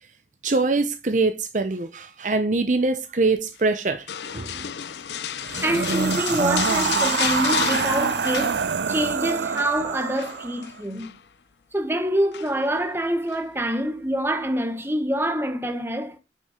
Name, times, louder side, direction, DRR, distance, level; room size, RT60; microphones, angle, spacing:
voice 1, 0.4-4.7, right 3 dB, 45° right, 0.9 m, -24 dB
sound 1, 4.1-9.1 9.3-9.7 10.2-11.2 12.3-12.8 13.3-13.4, left 9 dB, 75° left, 0.6 m, -31 dB
sound 2, 5.4-10.7, right 6 dB, 80° right, 0.5 m, -25 dB
voice 2, 5.6-11.1 11.7-16.2, right 1 dB, 15° right, 1.3 m, -26 dB
8.9 x 5.6 x 5.1 m
head